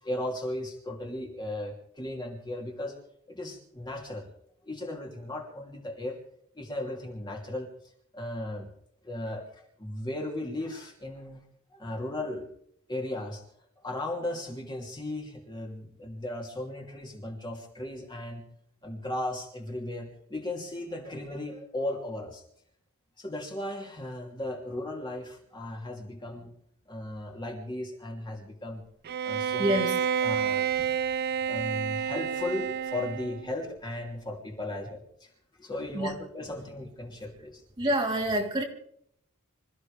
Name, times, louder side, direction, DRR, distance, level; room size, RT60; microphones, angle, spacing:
voice 1, 0.0-2.9 3.3-4.3 4.6-6.2 6.5-7.7 8.1-8.7 9.0-11.4 11.7-12.5 12.9-13.4 13.8-18.4 18.8-22.4 23.2-26.5 26.9-28.8 29.2-29.8 30.2-30.7 31.5-37.6, left 1 dB, 20° left, 3.0 m, -36 dB
Bowed string instrument, 29.1-33.5, right 7 dB, 45° right, 0.6 m, -29 dB
voice 2, 29.6-30.0 35.9-36.1 37.8-38.6, right 1 dB, 20° right, 3.7 m, -27 dB
27.5 x 15.0 x 3.4 m
head